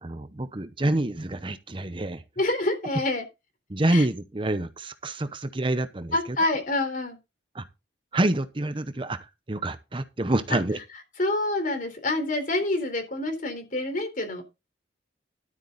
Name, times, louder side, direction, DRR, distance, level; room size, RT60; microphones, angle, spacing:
voice 1, 0.0-2.2 3.7-6.4 7.5-7.6 8.1-10.8, right 1 dB, 30° right, 0.8 m, -27 dB
voice 2, 2.4-3.2 3.9-4.1 6.1-7.2 10.5-10.6 11.2-14.4, left 2 dB, 45° left, 3.8 m, -27 dB
12.5 x 8.6 x 4.0 m
head